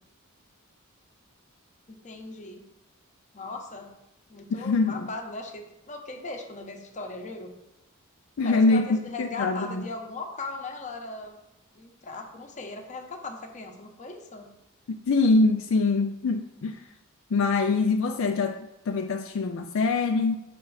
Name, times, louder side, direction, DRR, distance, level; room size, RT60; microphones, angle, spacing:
voice 1, 1.9-2.6 3.3-3.9 4.3-7.5 8.4-11.4 11.7-14.5, left 3 dB, 35° left, 3 dB, 0.9 m, -38 dB
voice 2, 4.5-5.1 8.4-9.8 15.1-16.8 17.3-20.4, left 3 dB, 65° left, 4 dB, 0.4 m, -24 dB
6.0 x 4.3 x 4.8 m, 0.92 s
head